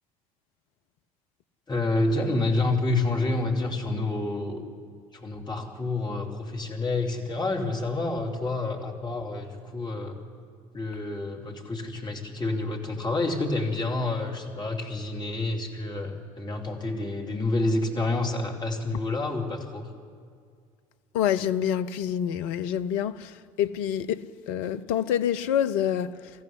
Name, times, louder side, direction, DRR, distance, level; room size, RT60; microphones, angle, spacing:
voice 1, 1.7-4.6 5.1-10.2 10.7-19.9, left 2 dB, 25° left, 2.8 m, -28 dB
voice 2, 21.1-26.3, left 9 dB, 60° left, 0.7 m, -27 dB
21.5 x 14.5 x 9.9 m
figure-of-eight pair, 60°, 18 cm